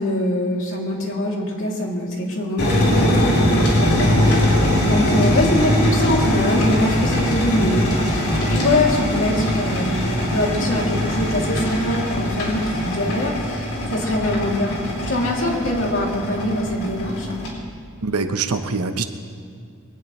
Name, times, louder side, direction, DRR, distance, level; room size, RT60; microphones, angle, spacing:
voice 1, 0.0-17.4, left 1 dB, 60° left, -2 dB, 3.0 m, -23 dB
sound 1, 2.6-17.5, left 1 dB, 80° left, 4.2 m, -21 dB
voice 2, 18.0-19.0, right 4 dB, 85° right, 8 dB, 1.0 m, -23 dB
23.0 x 17.5 x 3.3 m, 2.2 s
head